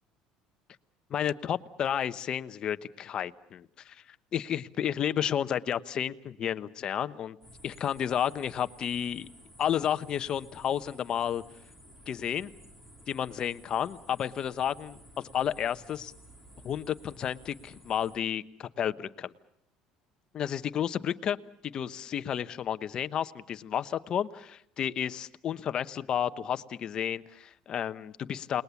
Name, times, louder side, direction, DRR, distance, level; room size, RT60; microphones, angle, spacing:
voice 1, 1.1-4.0 4.3-7.4 7.6-9.3 9.6-11.4 12.1-12.5 13.1-16.1 16.6-19.3 20.3-21.4 21.6-28.6, left 9 dB, 40° left, 13 dB, 0.9 m, -31 dB
sound 1, 7.4-18.2, equal, 15° right, 3.6 m, -54 dB
29.5 x 20.0 x 7.1 m, 0.73 s
cardioid pair, 130°, 2 cm